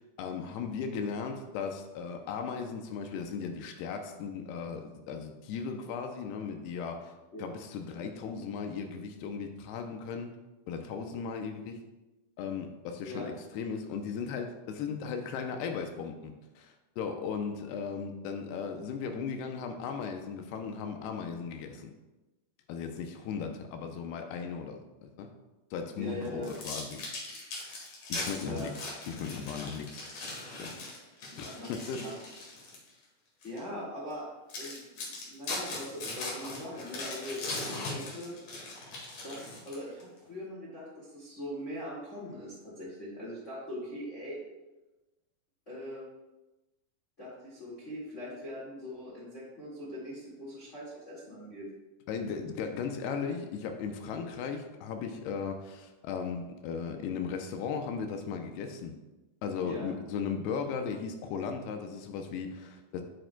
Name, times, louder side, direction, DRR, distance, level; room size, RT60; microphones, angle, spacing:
voice 1, 0.2-7.1 7.4-10.3 10.7-11.8 12.4-21.9 22.7-25.3 25.7-27.0 28.1-28.7 29.1-30.0 30.6-30.7 31.4-32.1 52.1-59.0 59.4-63.0, left 6 dB, 85° left, 5 dB, 2.7 m, -37 dB
voice 2, 26.0-26.5 28.4-28.7 31.3-31.7 32.0-32.1 33.4-34.3 34.5-38.3 39.2-44.4 45.7-46.1 47.2-51.7 59.6-59.9, left 1 dB, 30° left, -6 dB, 1.3 m, -41 dB
sound 1, 26.4-32.9 33.4-33.6 34.1-34.2 34.5-40.0, left 2 dB, 55° left, 3.0 m, -39 dB
9.0 x 8.8 x 2.2 m, 1.1 s
omnidirectional pair, 4.6 m